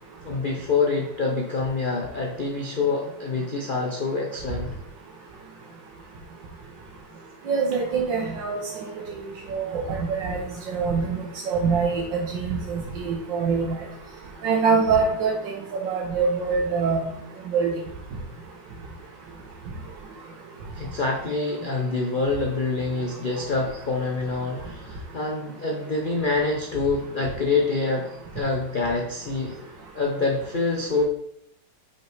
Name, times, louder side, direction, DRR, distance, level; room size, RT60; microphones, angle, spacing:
voice 1, 0.2-4.8 20.8-29.6 29.9-31.0, left 3 dB, 90° left, 0 dB, 0.4 m, -26 dB
voice 2, 7.5-8.9 9.5-9.8 10.2-10.4 10.7-11.2 11.5-12.0 12.4-13.8 14.4-15.5 15.8-17.0 17.5-17.7, right 5 dB, 75° right, -4 dB, 1.7 m, -24 dB
5.4 x 4.3 x 4.5 m, 0.72 s
omnidirectional pair, 2.0 m